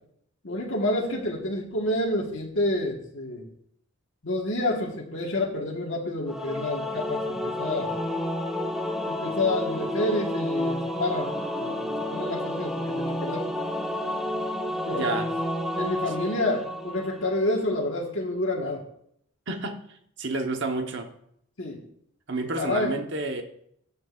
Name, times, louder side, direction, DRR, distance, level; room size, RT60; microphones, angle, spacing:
voice 1, 0.4-3.5 4.2-7.9 9.1-11.3 11.6-13.4 14.9-15.2 15.8-18.8 21.6-21.8 22.6-23.0, left 1 dB, 60° left, -2 dB, 1.6 m, -29 dB
Singing / Musical instrument, 6.3-17.5, left 1 dB, ahead, 1.0 m, -30 dB
voice 2, 14.9-15.3 19.5-19.8 20.2-21.1 22.3-23.4, right 3 dB, 55° right, 4 dB, 1.1 m, -29 dB
15.0 x 8.6 x 2.5 m, 0.70 s
head